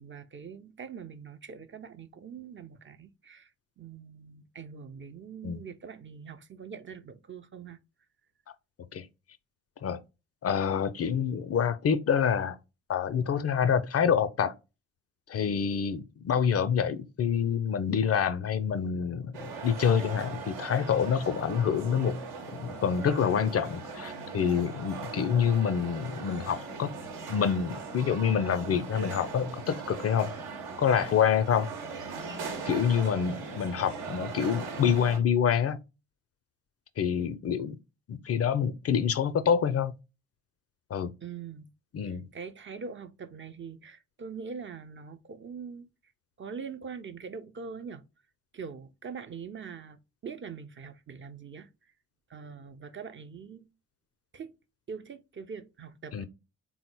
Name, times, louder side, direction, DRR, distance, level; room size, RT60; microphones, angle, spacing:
voice 1, 0.0-3.5 3.8-7.8 41.2-41.7 42.0-45.9 46.4-48.0 48.5-51.7 52.3-53.7 54.3-54.5 54.9-56.3, right 6 dB, 30° right, 0.5 m, -43 dB
voice 2, 10.4-12.6 12.9-14.5 15.3-22.2 22.5-26.9 27.3-30.3 30.8-31.7 32.7-35.8 37.0-37.8 38.1-39.9 40.9-41.1 41.9-42.3 56.1-56.3, left 7 dB, 40° left, 0.5 m, -27 dB
sound 1, 19.3-35.2, right 4 dB, 75° right, 1.0 m, -39 dB
3.7 x 2.0 x 4.4 m
hypercardioid pair, 40°, 40 cm